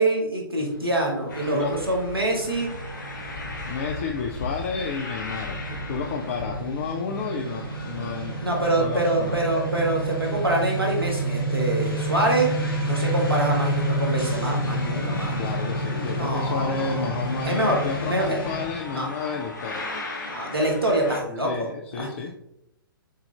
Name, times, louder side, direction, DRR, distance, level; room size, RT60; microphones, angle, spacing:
voice 1, 0.0-2.7 8.4-12.5 12.8-15.4 16.1-17.1 17.4-18.4 18.9-19.1 20.2-21.7 21.9-22.1, right 1 dB, 80° right, -1 dB, 1.5 m, -25 dB
sound 1, 0.6-18.7, right 1 dB, 75° left, 1.3 m, -30 dB
sound 2, 1.3-21.2, left 2 dB, 55° left, 1.0 m, -39 dB
voice 2, 3.6-8.4 8.8-9.4 15.4-19.9 21.4-22.3, left 6 dB, 35° left, 3 dB, 0.4 m, -31 dB
6.5 x 2.4 x 3.3 m, 0.83 s
figure-of-eight pair, 120°, 12 cm